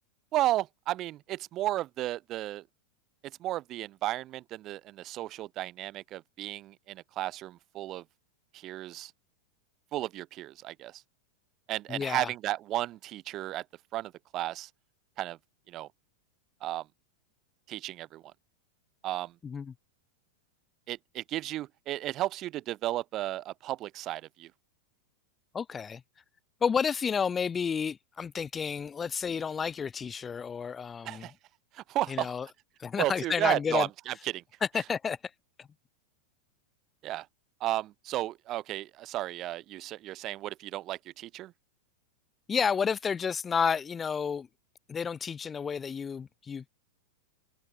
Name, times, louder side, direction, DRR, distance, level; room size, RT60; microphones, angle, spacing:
voice 1, 0.3-2.6 3.4-8.0 8.5-9.1 9.9-11.0 11.7-13.6 13.9-14.7 15.2-15.4 15.7-15.9 16.6-16.9 17.7-18.2 19.0-19.3 20.9-24.5 31.0-31.3 31.7-32.3 33.0-34.4 37.0-37.3 37.6-41.5, right 14 dB, 35° right, 4.1 m, -33 dB
voice 2, 11.9-12.3 19.4-19.7 25.5-26.0 26.6-31.2 32.1-32.5 32.8-33.9 34.7-35.2 35.6-35.7 42.5-44.5 44.9-46.7, left 6 dB, 20° left, 7.6 m, -31 dB
figure-of-eight pair, 90°, 0 cm